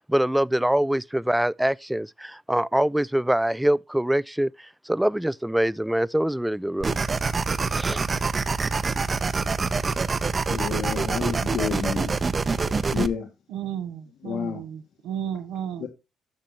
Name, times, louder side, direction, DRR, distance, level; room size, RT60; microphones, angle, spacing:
voice 1, 0.0-4.5 4.9-7.0 7.8-8.0, right 1 dB, 5° right, 0.3 m, -24 dB
sound 1, 6.8-13.1, right 4 dB, 30° right, 0.8 m, -25 dB
voice 2, 10.5-12.2 12.9-13.3 14.2-14.6 15.8-15.9, left 8 dB, 75° left, 1.9 m, -30 dB
voice 3, 13.5-15.9, right 9 dB, 90° right, 0.9 m, -33 dB
12.0 x 6.7 x 2.9 m
cardioid pair, 105°, 0 cm